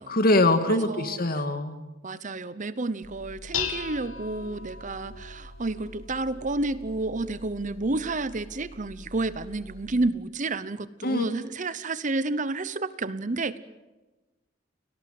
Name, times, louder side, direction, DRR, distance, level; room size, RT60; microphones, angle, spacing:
voice 1, 0.1-1.8 11.0-11.2, left 2 dB, 50° left, 8 dB, 2.2 m, -23 dB
voice 2, 0.7-1.2 2.0-13.6, right 2 dB, 40° right, 15 dB, 0.9 m, -30 dB
Dishes pots and pans, 3.0-10.1, left 5 dB, 90° left, 1.9 m, -39 dB
29.5 x 19.0 x 7.8 m, 1.1 s
head